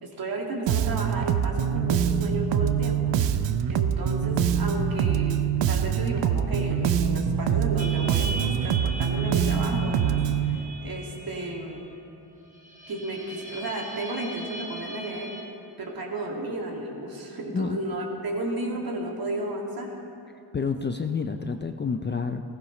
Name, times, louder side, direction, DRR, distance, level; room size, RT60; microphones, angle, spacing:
voice 1, 0.0-3.2 3.7-5.4 5.7-11.9 12.9-15.3 15.8-19.9, right 2 dB, 50° right, -1 dB, 2.4 m, -33 dB
Bass guitar, 0.7-10.6, right 8 dB, 75° right, 0.7 m, -24 dB
sound 1, 7.8-15.4, right 2 dB, 15° right, 1.9 m, -39 dB
voice 2, 20.5-22.4, left 5 dB, 25° left, 6 dB, 0.5 m, -28 dB
16.0 x 15.0 x 3.2 m, 2.7 s
cardioid pair, 85°, 44 cm